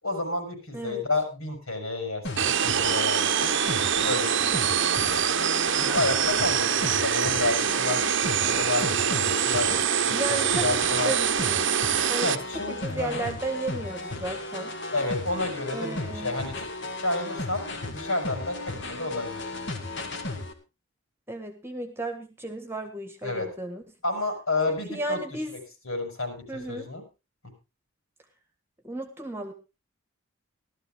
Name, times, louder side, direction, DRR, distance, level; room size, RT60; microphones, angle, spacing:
voice 1, 0.0-3.5 4.0-4.7 5.7-9.8 10.3-11.1 12.2-13.3 14.9-16.7 17.0-17.6 17.9-19.6 23.2-23.5 24.0-25.2 25.5-25.6 25.8-26.4 26.7-27.0, left 2 dB, 80° left, 4 dB, 5.5 m, -30 dB
sound 1, 2.2-20.5, left 2 dB, 55° left, 2.0 m, -35 dB
sound 2, 2.4-12.4, right 8 dB, 55° right, 0.9 m, -25 dB
voice 2, 10.1-10.8 11.0-11.7 12.1-12.4 12.7-14.8 15.7-16.4 21.3-23.8 24.7-25.5 26.5-26.9 28.8-29.5, right 2 dB, 10° right, 7 dB, 1.5 m, -34 dB
15.5 x 13.0 x 3.6 m, 0.27 s
head